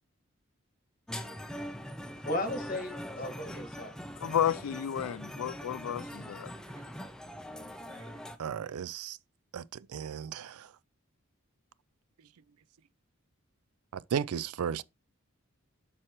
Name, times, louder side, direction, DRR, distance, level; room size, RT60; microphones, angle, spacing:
sound 1, 1.1-8.4, equal, 5° left, 0.5 m, -42 dB
voice 1, 2.2-3.9, left 1 dB, 40° left, 1.7 m, -35 dB
voice 2, 4.2-6.5, left 9 dB, 85° left, 0.4 m, -32 dB
voice 3, 8.4-9.2 9.5-9.6 9.9-10.7 13.9-14.8, right 7 dB, 85° right, 0.4 m, -34 dB
7.6 x 6.1 x 3.0 m
head